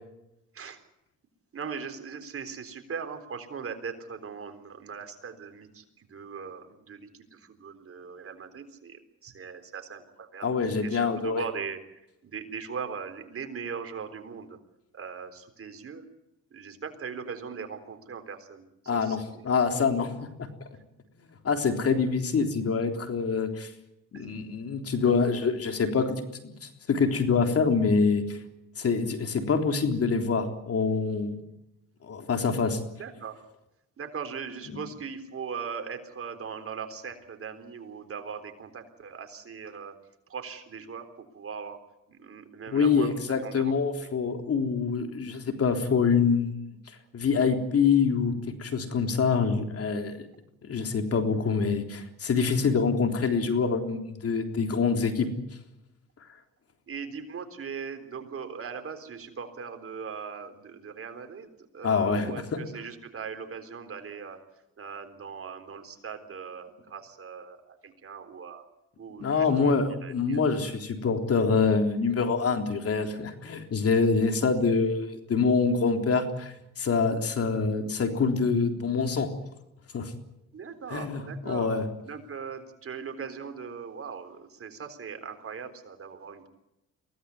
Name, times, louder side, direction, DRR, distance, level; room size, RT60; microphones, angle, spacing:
voice 1, 1.5-14.6 14.9-16.1 16.5-18.6 18.9-19.4 24.1-24.3 33.0-33.4 34.0-39.9 40.3-41.8 42.1-43.7 44.0-44.1 56.9-61.5 61.7-64.4 64.8-68.6 69.0-70.4 80.5-81.8 82.0-86.5, right 6 dB, 45° right, 7 dB, 3.9 m, -40 dB
voice 2, 10.4-11.4 18.9-20.1 20.4-20.5 21.4-23.7 24.1-28.4 28.8-31.4 32.0-32.8 34.7-34.8 42.7-46.6 47.1-48.3 48.6-50.3 50.6-55.3 61.8-62.3 69.2-79.3 79.9-80.1 80.9-81.8, left 5 dB, 50° left, 5 dB, 3.7 m, -25 dB
23.5 x 17.0 x 9.6 m, 0.89 s
cardioid pair, 90°, 30 cm